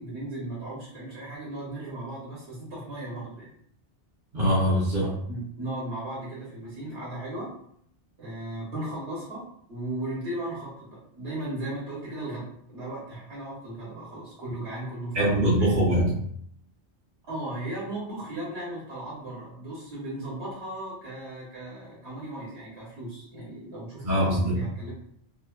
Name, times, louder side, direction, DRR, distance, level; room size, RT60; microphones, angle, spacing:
voice 1, 0.0-3.5 5.0-7.5 8.2-15.7 17.2-24.9, right 1 dB, 65° right, -7 dB, 1.2 m, -36 dB
voice 2, 4.3-5.1 15.1-16.1 24.0-24.5, equal, 50° right, -6 dB, 0.9 m, -22 dB
3.0 x 2.1 x 2.2 m, 0.66 s
omnidirectional pair, 1.2 m